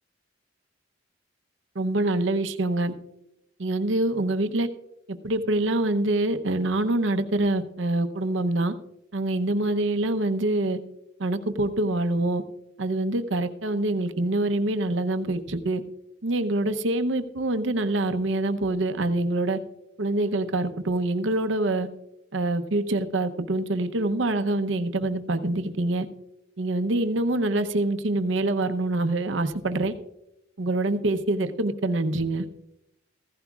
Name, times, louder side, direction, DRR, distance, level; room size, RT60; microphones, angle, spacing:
voice 1, 1.7-2.9 3.6-4.7 5.1-8.7 9.1-10.8 11.2-12.4 12.8-15.8 16.2-19.6 20.0-21.9 22.3-26.1 26.6-29.9 30.6-32.5, right 2 dB, 65° right, 9 dB, 0.7 m, -25 dB
15.5 x 15.0 x 2.4 m, 0.86 s
head